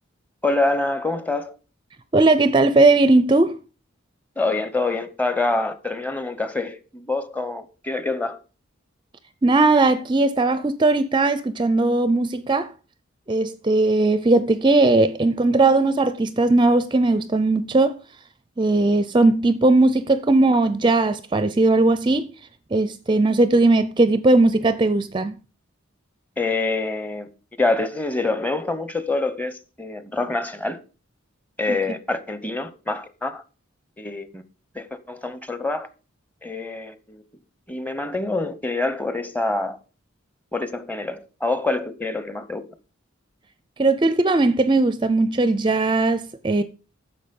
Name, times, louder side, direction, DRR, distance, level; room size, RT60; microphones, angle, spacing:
voice 1, 0.4-1.6 4.4-8.4 26.4-27.3 27.6-30.8 31.6-33.4 34.0-34.4 34.7-35.9 36.4-37.2 37.7-39.8 40.5-42.7, left 3 dB, 10° left, 0.8 m, -26 dB
voice 2, 2.1-3.6 9.4-12.7 13.3-18.0 18.6-22.3 22.7-25.4 31.7-31.8 43.8-46.6, right 2 dB, 25° right, 0.5 m, -18 dB
10.0 x 7.0 x 5.3 m
head